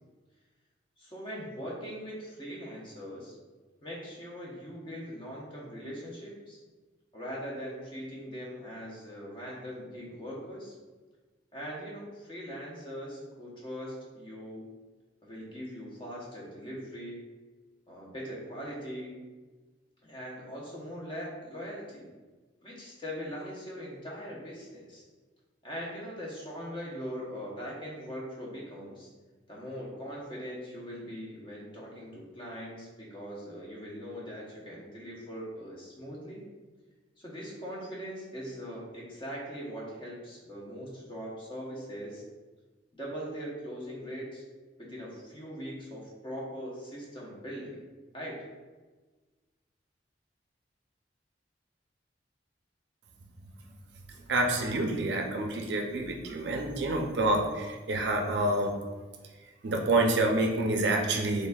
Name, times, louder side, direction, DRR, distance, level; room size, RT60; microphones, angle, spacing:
voice 1, 1.0-3.3 3.8-6.6 7.1-10.7 11.5-14.7 15.2-17.3 17.9-19.2 20.0-22.1 22.6-25.0 25.6-29.1 29.5-36.4 37.2-42.2 42.9-44.4 44.8-47.8 48.1-48.4, equal, 25° left, -4 dB, 0.8 m, -41 dB
voice 2, 54.3-58.7 59.6-61.5, right 2 dB, 60° right, 2 dB, 0.5 m, -27 dB
4.0 x 3.2 x 2.3 m, 1.3 s
head